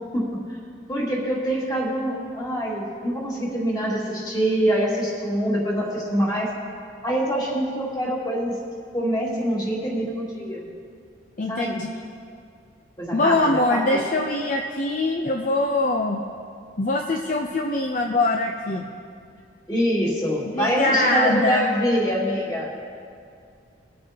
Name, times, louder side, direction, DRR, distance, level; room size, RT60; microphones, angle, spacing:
voice 1, 0.9-6.5 7.0-8.6 8.9-10.6 11.5-11.8 13.0-13.4 13.7-13.8 19.7-22.7, equal, 20° left, -5 dB, 2.3 m, -24 dB
voice 2, 11.4-11.9 13.1-16.2 16.8-18.9 20.5-21.7, left 2 dB, 45° left, 2 dB, 0.6 m, -23 dB
21.5 x 8.6 x 2.9 m, 2.3 s
head